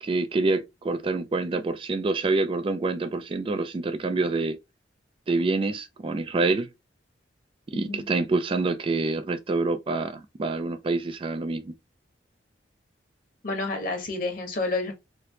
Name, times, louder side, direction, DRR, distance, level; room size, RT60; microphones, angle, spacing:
voice 1, 0.0-4.6 5.3-6.7 7.7-11.7, right 3 dB, 30° right, 0.3 m, -26 dB
voice 2, 7.7-8.1 13.4-14.9, left 2 dB, 50° left, 1.2 m, -29 dB
3.2 x 2.9 x 2.8 m
head